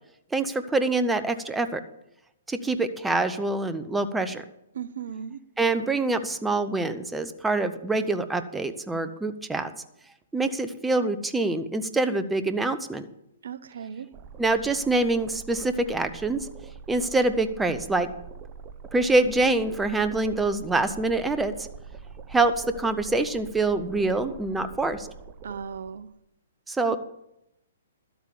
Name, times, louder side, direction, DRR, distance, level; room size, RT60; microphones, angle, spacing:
voice 1, 0.3-1.8 2.5-4.4 5.6-9.7 10.3-13.1 14.4-16.5 16.9-18.1 18.9-21.5 22.3-25.1 26.7-27.0, right 2 dB, 10° right, 10 dB, 0.8 m, -25 dB
voice 2, 4.7-5.4 13.4-14.1 25.4-26.1 26.9-27.0, right 7 dB, 65° right, 16 dB, 0.6 m, -36 dB
sound 1, 14.1-26.1, right 6 dB, 25° right, 1.2 m, -44 dB
12.5 x 8.2 x 7.2 m, 0.82 s
figure-of-eight pair, 125°, 0 cm